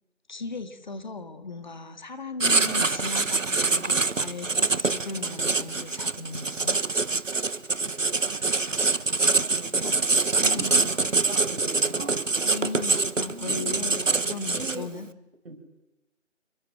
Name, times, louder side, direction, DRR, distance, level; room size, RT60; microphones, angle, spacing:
voice 1, 0.3-6.8 9.8-9.9 10.4-10.9 12.4-15.1, left 3 dB, 35° left, 9 dB, 2.0 m, -37 dB
Writing, 2.4-15.0, right 3 dB, 75° right, 1.5 m, -25 dB
voice 2, 8.4-10.0 10.7-12.2 12.7-13.7 15.4-15.6, right 2 dB, 45° right, 8 dB, 5.1 m, -43 dB
28.0 x 23.0 x 7.7 m, 1.0 s
figure-of-eight pair, 160°, 38 cm